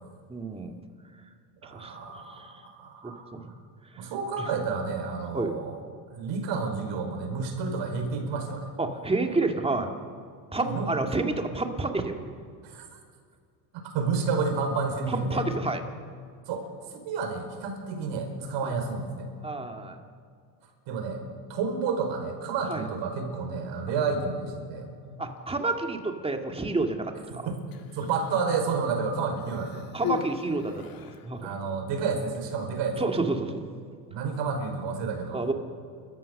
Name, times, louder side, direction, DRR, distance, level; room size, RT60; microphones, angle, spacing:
voice 1, 0.3-0.8 1.6-2.0 2.3-2.5 3.0-3.4 3.9-4.1 5.3-5.5 8.8-9.9 10.5-12.2 15.1-15.8 18.6-18.7 19.4-20.0 22.7-22.9 25.2-27.5 29.9-31.5 33.0-33.6 35.3-35.5, right 3 dB, 10° right, 4 dB, 2.2 m, -29 dB
voice 2, 1.6-3.4 3.9-5.8 6.1-8.7 10.6-10.9 12.6-12.9 13.7-15.5 16.5-16.7 17.0-19.3 20.9-21.2 21.5-25.2 27.4-27.6 27.9-29.8 31.4-33.0 34.1-35.4, right 4 dB, 60° right, 4 dB, 5.1 m, -30 dB
Human voice, 27.6-28.5 29.4-31.3 32.2-32.4, left 9 dB, 45° left, 1.9 m, -37 dB
29.5 x 14.0 x 6.6 m, 2.2 s
supercardioid pair, 105°, 50 cm